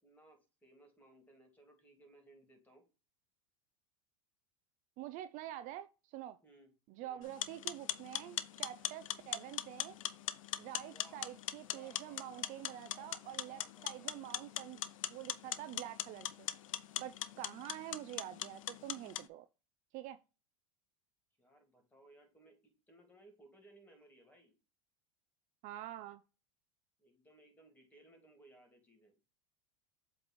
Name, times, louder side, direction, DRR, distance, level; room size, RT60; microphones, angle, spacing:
voice 1, 0.0-2.8 6.4-6.7 7.0-7.3 10.9-11.3 11.6-14.6 21.4-24.5 27.0-29.2, right 1 dB, 10° left, 2.8 m, -63 dB
voice 2, 5.0-6.4 6.9-10.0 10.6-14.8 15.1-16.5 17.0-19.5 19.9-20.2 25.6-26.2, right 13 dB, 50° right, 0.5 m, -47 dB
sound 1, 7.2-19.3, left 12 dB, 80° left, 0.6 m, -41 dB
7.7 x 3.3 x 4.1 m
hypercardioid pair, 95°, 17 cm